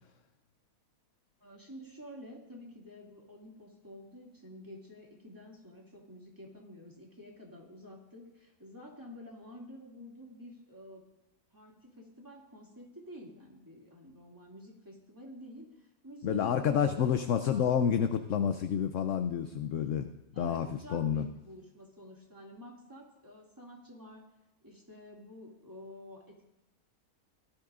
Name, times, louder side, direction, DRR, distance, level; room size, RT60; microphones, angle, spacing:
voice 1, 1.4-11.0 11.5-17.9 20.3-24.3 24.6-26.4, equal, 15° right, -2 dB, 2.3 m, -50 dB
voice 2, 16.2-20.1 20.4-21.2, left 8 dB, 65° left, 8 dB, 0.9 m, -29 dB
17.5 x 13.0 x 2.5 m, 0.99 s
omnidirectional pair, 1.6 m